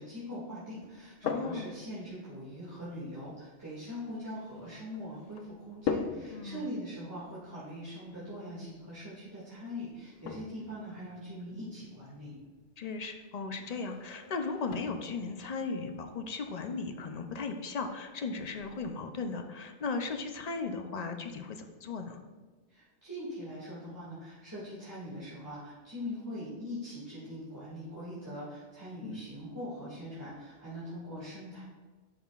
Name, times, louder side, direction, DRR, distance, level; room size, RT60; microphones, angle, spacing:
voice 1, 0.0-12.3 22.7-31.6, equal, 15° right, -11 dB, 1.9 m, -42 dB
sound 1, 0.8-18.9, left 6 dB, 90° left, 1.0 m, -44 dB
voice 2, 1.2-1.7 6.3-6.6 12.8-22.2 29.0-29.3, left 4 dB, 60° left, 6 dB, 0.4 m, -37 dB
10.5 x 5.6 x 2.4 m, 1.4 s
omnidirectional pair, 1.3 m